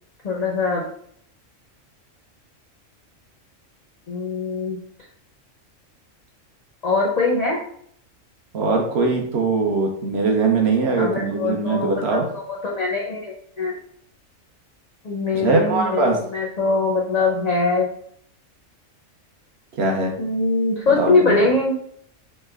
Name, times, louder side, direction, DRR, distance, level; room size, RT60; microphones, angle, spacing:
voice 1, 0.2-0.8 4.1-4.8 6.8-7.6 11.0-13.7 15.0-17.9 20.2-21.8, left 3 dB, 60° left, -3 dB, 0.4 m, -22 dB
voice 2, 8.5-12.2 15.3-16.2 19.8-20.1 21.0-21.4, right 3 dB, 60° right, 1 dB, 0.8 m, -21 dB
3.2 x 2.1 x 3.3 m, 0.64 s
omnidirectional pair, 1.3 m